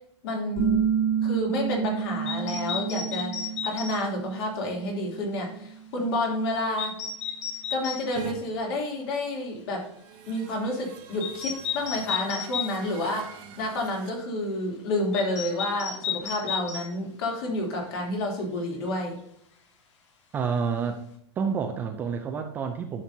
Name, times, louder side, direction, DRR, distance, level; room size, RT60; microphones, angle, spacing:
voice 1, 0.2-0.8 1.2-6.9 7.7-9.9 10.3-13.3 13.6-19.1, left 1 dB, 55° left, 0 dB, 2.9 m, -29 dB
sound 1, 0.6-6.0, right 8 dB, 35° left, 3.3 m, -29 dB
sound 2, 2.3-4.0 6.8-8.0 11.2-12.8 15.1-16.8, left 7 dB, 80° left, 1.8 m, -32 dB
sound 3, 8.2-8.4 9.7-14.1, right 9 dB, 35° right, 0.8 m, -43 dB
voice 2, 20.3-21.0 21.4-23.0, right 6 dB, 10° right, 5 dB, 0.3 m, -29 dB
10.0 x 6.0 x 2.7 m, 0.71 s
supercardioid pair, 170°, 15 cm